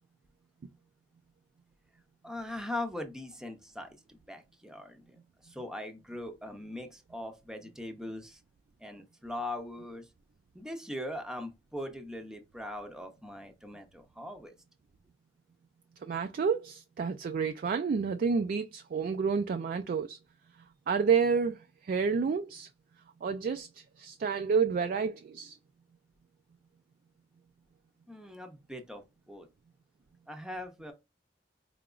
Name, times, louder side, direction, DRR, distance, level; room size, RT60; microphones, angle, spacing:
voice 1, 2.2-8.4 8.8-10.1 10.5-14.6 28.1-29.5 30.3-30.9, left 1 dB, 5° right, 0.6 m, -41 dB
voice 2, 16.0-20.2 20.9-22.7 23.2-25.6, right 5 dB, 50° right, 0.3 m, -29 dB
4.8 x 2.8 x 2.4 m
head